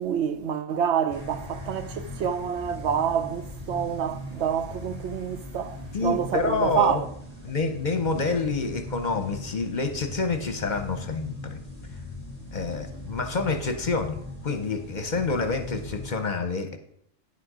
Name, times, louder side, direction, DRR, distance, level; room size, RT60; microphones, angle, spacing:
voice 1, 0.0-7.1, right 8 dB, 75° right, 0.8 m, -27 dB
sound 1, 1.1-16.1, left 1 dB, 45° right, 3.5 m, -40 dB
voice 2, 5.9-7.0 7.4-11.6 11.9-12.0 12.5-14.2 14.4-16.8, left 4 dB, 45° left, 0.8 m, -28 dB
9.8 x 6.4 x 4.8 m
omnidirectional pair, 1.2 m